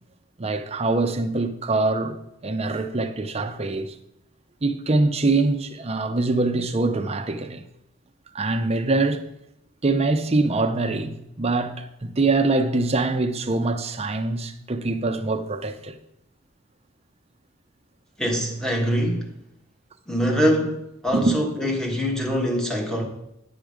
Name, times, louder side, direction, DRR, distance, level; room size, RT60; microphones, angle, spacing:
voice 1, 0.4-2.2 2.4-3.9 4.6-7.6 8.3-9.3 9.8-15.9 21.1-21.3, right 3 dB, 30° right, 0.7 m, -24 dB
voice 2, 18.2-19.3 20.1-20.8 21.0-23.0, equal, 5° left, 1.4 m, -23 dB
9.6 x 6.1 x 5.1 m
head